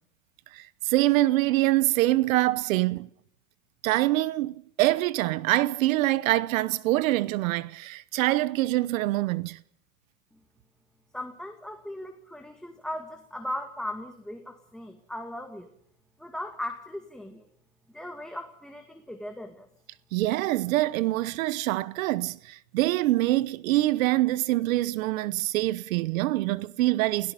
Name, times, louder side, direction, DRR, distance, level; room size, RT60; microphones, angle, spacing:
voice 1, 0.5-3.1 3.8-9.6 20.1-27.3, right 17 dB, 75° right, 1.0 m, -25 dB
voice 2, 11.1-15.7 16.2-17.5 17.9-19.7, left 1 dB, ahead, 2.0 m, -38 dB
28.0 x 17.5 x 5.4 m
supercardioid pair, 125°, 40 cm